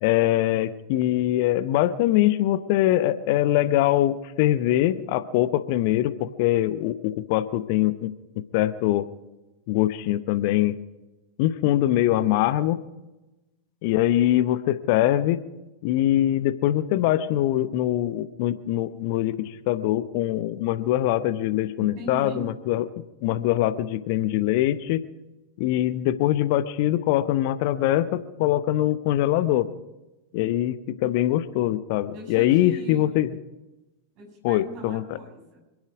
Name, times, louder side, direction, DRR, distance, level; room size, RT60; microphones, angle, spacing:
voice 1, 0.0-8.1 8.5-9.1 9.7-10.7 11.4-12.8 13.8-15.4 15.8-22.8 23.2-25.0 25.6-29.6 30.3-33.3 34.4-35.0, left 13 dB, 45° left, 13 dB, 0.8 m, -23 dB
voice 2, 21.8-22.5 32.1-33.3 34.1-35.6, right 1 dB, 40° right, 1 dB, 7.3 m, -40 dB
27.0 x 10.5 x 5.1 m, 1.0 s
figure-of-eight pair, 90°, 0 cm